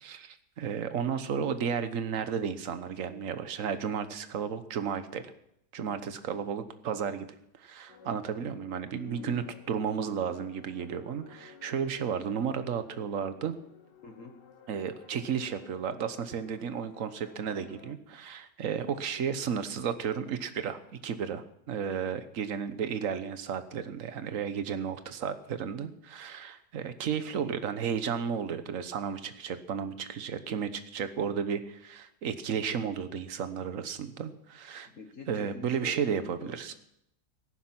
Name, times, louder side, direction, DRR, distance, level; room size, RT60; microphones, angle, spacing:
voice 1, 0.0-5.3 5.7-7.3 7.5-13.5 14.7-34.9 35.3-36.7, right 7 dB, 55° right, 11 dB, 1.3 m, -33 dB
sound 1, 7.9-18.0, left 6 dB, 85° left, 1.9 m, -54 dB
voice 2, 9.0-9.5 14.0-14.4 34.8-36.7, left 4 dB, 50° left, 4 dB, 1.7 m, -46 dB
17.5 x 10.0 x 6.0 m, 0.78 s
omnidirectional pair, 1.8 m